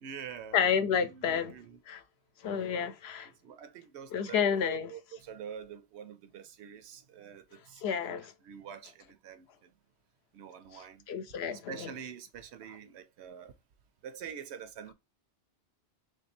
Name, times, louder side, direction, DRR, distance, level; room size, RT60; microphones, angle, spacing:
voice 1, 0.0-0.6 1.1-1.8 3.4-8.0 8.4-9.7 10.3-11.0 11.7-13.5 14.0-14.9, right 8 dB, 80° right, 0.9 m, -46 dB
voice 2, 0.5-1.5 1.9-2.0 2.4-3.3 4.1-4.9 7.8-8.3 10.7-11.9, left 7 dB, 70° left, 0.8 m, -30 dB
3.3 x 2.6 x 4.1 m
omnidirectional pair, 1.1 m